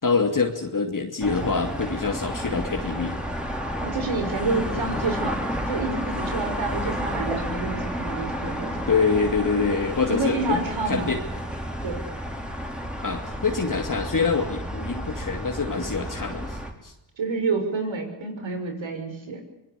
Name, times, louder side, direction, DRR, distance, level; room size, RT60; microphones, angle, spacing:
voice 1, 0.0-3.2 4.7-5.0 8.9-11.2 13.0-16.9, left 4 dB, 40° left, 2 dB, 2.8 m, -25 dB
sound 1, 1.2-16.7, equal, ahead, 5.5 m, -31 dB
voice 2, 3.8-5.4 5.7-8.8 10.1-11.2 11.8-12.0 17.2-19.4, right 3 dB, 75° right, 5 dB, 6.2 m, -28 dB
24.0 x 20.5 x 8.5 m, 0.92 s
cardioid pair, 55°, 46 cm